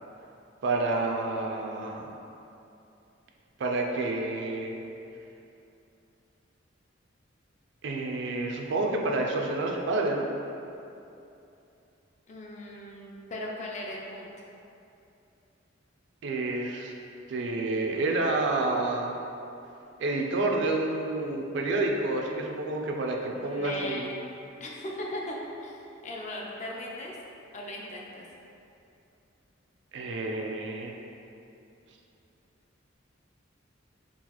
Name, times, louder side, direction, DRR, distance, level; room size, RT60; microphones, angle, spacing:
voice 1, 0.6-2.1 3.6-4.8 7.8-10.3 16.2-16.9 17.3-19.2 20.0-24.1 29.9-31.0, right 2 dB, 60° right, 1 dB, 0.3 m, -29 dB
voice 2, 12.3-14.3 23.3-24.1 24.6-27.2 27.5-28.2, left 1 dB, 35° left, -2 dB, 0.4 m, -38 dB
3.8 x 2.4 x 2.9 m, 2.8 s
head